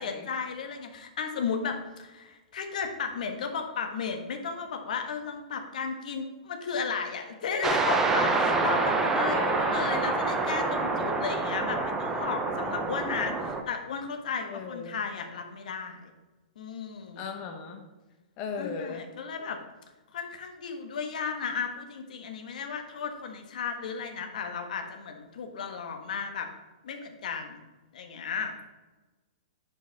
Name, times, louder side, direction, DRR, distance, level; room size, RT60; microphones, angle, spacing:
voice 1, 0.0-16.1 16.5-17.2 18.5-19.6 20.1-26.5 26.8-27.6 27.9-28.5, left 6 dB, 65° left, 5 dB, 1.4 m, -34 dB
sound 1, 7.6-13.6, right 3 dB, 10° right, 0.6 m, -27 dB
voice 2, 9.2-9.9 14.5-15.0 17.2-17.8 18.4-19.0, left 5 dB, 30° left, 5 dB, 1.1 m, -36 dB
10.5 x 5.6 x 3.5 m, 1.2 s
hypercardioid pair, 160°, 4 cm